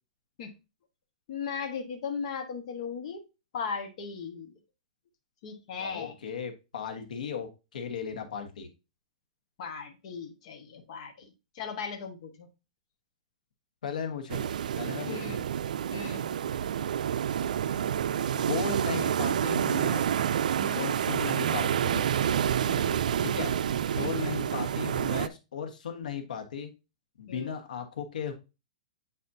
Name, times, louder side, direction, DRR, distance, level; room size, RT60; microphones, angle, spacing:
voice 1, 1.3-3.2 3.5-4.5 5.4-6.2 9.6-12.5 15.1-15.4 15.9-16.3 20.6-20.9 22.6-23.1 24.0-24.4 27.3-27.5, left 6 dB, 50° left, 3 dB, 1.3 m, -38 dB
voice 2, 5.8-8.7 13.8-14.5 14.7-15.4 18.5-20.0 20.7-22.1 23.2-23.5 23.9-26.7 27.2-28.3, left 6 dB, 90° left, 5 dB, 1.4 m, -36 dB
sound 1, 14.3-25.3, right 9 dB, 80° right, 0.4 m, -28 dB
8.6 x 4.2 x 2.7 m, 0.27 s
hypercardioid pair, 160°, 4 cm